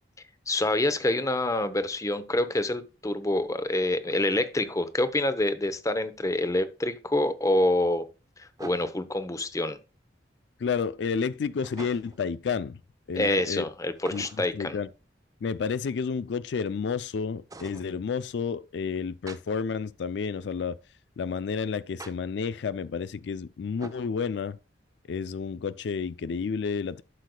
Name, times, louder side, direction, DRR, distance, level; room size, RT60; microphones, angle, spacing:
voice 1, 0.5-8.1 8.4-9.8 13.1-14.8, left 1 dB, 20° left, 0.8 m, -26 dB
sound 1, 5.9-6.0 8.6-9.1 11.6-12.3 14.0-14.6 17.5-17.9 19.3-19.4 22.0-22.1 23.8-24.1, right 2 dB, 20° right, 0.7 m, -44 dB
voice 2, 10.6-12.8 13.1-13.6 14.1-14.3 14.5-14.9 15.4-20.8 21.2-24.6 25.1-27.0, left 5 dB, 75° left, 0.4 m, -30 dB
11.5 x 6.4 x 2.2 m
head